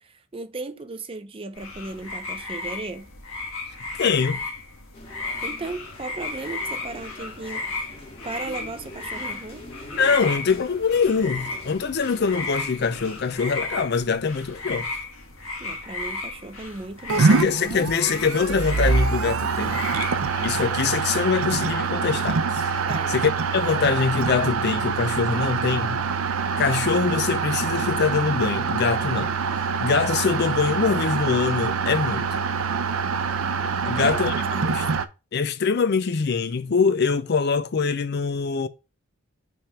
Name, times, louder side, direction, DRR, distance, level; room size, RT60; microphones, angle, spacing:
voice 1, 0.0-3.1 5.4-9.7 15.6-17.4 22.9-23.1 33.8-34.7, right 3 dB, 25° right, 0.5 m, -36 dB
sound 1, 1.5-20.8, left 3 dB, 70° left, 1.7 m, -34 dB
voice 2, 4.0-4.4 10.0-14.9 17.2-19.8 20.4-22.8 23.1-26.0 26.6-32.3 33.8-34.3 34.6-34.8 35.3-38.7, left 5 dB, 50° left, 0.4 m, -23 dB
sound 2, 4.9-13.4, left 1 dB, 25° left, 1.8 m, -44 dB
sound 3, 17.1-35.1, right 5 dB, 80° right, 0.6 m, -25 dB
5.7 x 3.6 x 5.5 m
head